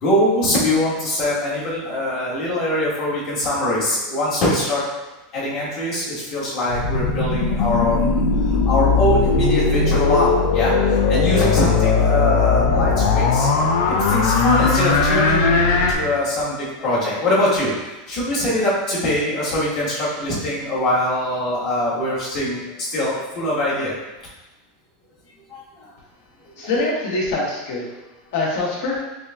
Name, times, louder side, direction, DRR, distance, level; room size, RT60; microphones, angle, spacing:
voice 1, 0.0-4.8 5.3-10.3 10.5-13.5 14.0-17.7 18.1-23.9 25.5-25.9 26.6-26.7, left 1 dB, 35° left, -7 dB, 1.3 m, -23 dB
sound 1, 6.7-15.9, left 4 dB, 85° left, 0.5 m, -18 dB
voice 2, 26.6-27.9 28.3-29.0, left 2 dB, 60° left, -4 dB, 1.2 m, -23 dB
5.8 x 2.6 x 2.3 m, 1.1 s
supercardioid pair, 175°, 0 cm